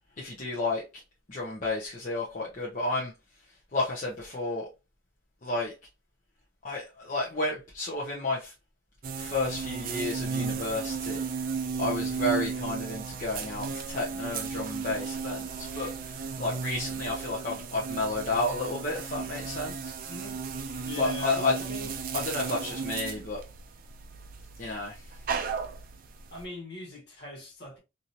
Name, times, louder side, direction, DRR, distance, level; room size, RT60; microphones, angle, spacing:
voice 1, 0.2-1.0 1.3-3.1 3.7-4.7 5.4-5.7 6.6-8.5 9.1-11.2 11.8-15.5 15.7-19.9 20.9-21.6 22.1-23.4 24.6-25.1, left 2 dB, 40° left, 0.7 m, -31 dB
sound 1, 9.0-26.4, right 5 dB, 45° right, 0.4 m, -35 dB
voice 2, 20.1-20.4 20.8-21.9 26.3-27.8, left 1 dB, 55° left, 1.4 m, -41 dB
2.9 x 2.6 x 2.6 m
head